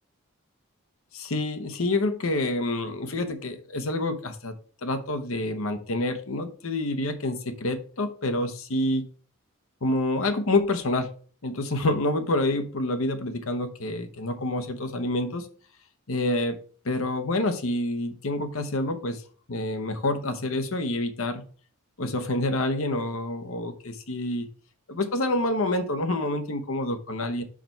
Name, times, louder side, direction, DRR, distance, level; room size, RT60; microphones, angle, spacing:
voice 1, 1.1-4.5 4.8-9.0 9.8-11.1 11.4-15.5 16.1-16.6 16.8-19.2 19.5-21.4 22.0-24.5 24.9-27.4, left 2 dB, 65° left, 9 dB, 0.9 m, -27 dB
4.9 x 4.5 x 5.6 m, 0.42 s
head